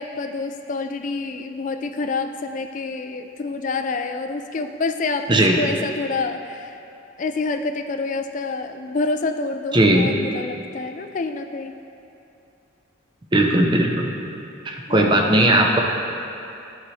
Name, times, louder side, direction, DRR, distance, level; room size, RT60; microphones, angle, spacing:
voice 1, 0.0-6.8 7.2-11.8 14.9-15.4, left 3 dB, 40° left, 7 dB, 0.3 m, -28 dB
voice 2, 5.3-5.6 9.7-10.1 13.3-14.1 14.6-15.8, right 1 dB, 25° right, 1 dB, 0.5 m, -17 dB
12.0 x 4.1 x 3.2 m, 2.8 s
head